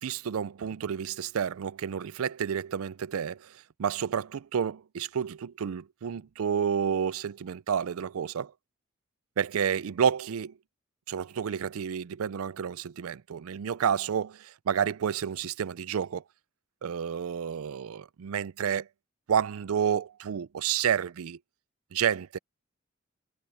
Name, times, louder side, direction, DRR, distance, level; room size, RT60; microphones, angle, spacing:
voice 1, 0.0-8.5 9.4-10.6 11.1-16.2 16.8-18.9 19.3-21.4 21.9-22.4, right 8 dB, 75° right, 0.4 m, -30 dB
head